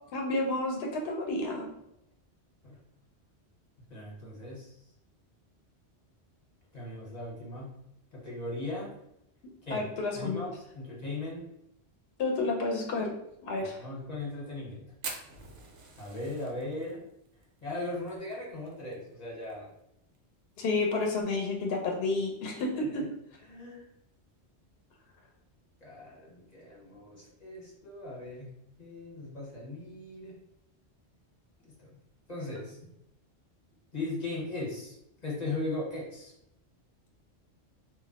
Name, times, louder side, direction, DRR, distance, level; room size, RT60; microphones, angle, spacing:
voice 1, 0.1-1.7 9.7-10.4 12.2-13.1 13.4-13.8 20.6-23.1, left 2 dB, 70° left, 1 dB, 0.8 m, -30 dB
voice 2, 3.9-4.7 6.7-7.7 8.1-8.9 9.7-9.9 10.1-11.4 13.8-14.8 16.0-17.0 17.6-19.7 22.7-23.0 23.5-23.8 25.8-28.5 28.8-30.3 31.8-31.9 32.3-32.8 33.9-34.9 35.2-36.3, left 2 dB, 40° left, -5 dB, 1.0 m, -38 dB
Fire, 15.0-19.5 19.8-19.9 20.1-20.2 20.6-21.0 21.6-21.7 22.7-22.9, right 4 dB, 70° right, 0.8 m, -44 dB
2.3 x 2.1 x 3.8 m, 0.80 s
omnidirectional pair, 1.1 m